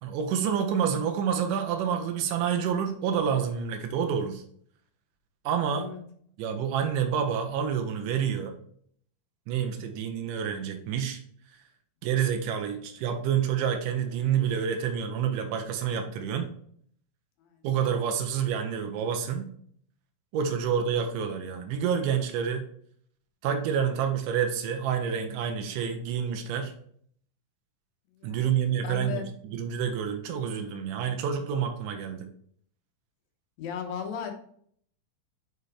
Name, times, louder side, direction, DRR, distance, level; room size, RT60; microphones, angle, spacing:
voice 1, 0.0-4.4 5.5-5.9 6.4-8.5 9.5-11.2 12.0-16.5 17.6-19.5 20.3-22.7 23.4-26.7 28.2-32.3, right 8 dB, 90° right, 5 dB, 2.3 m, -28 dB
voice 2, 28.1-29.3 33.6-34.3, left 7 dB, 70° left, 3 dB, 2.2 m, -36 dB
5.7 x 4.0 x 4.8 m, 0.62 s
omnidirectional pair, 3.7 m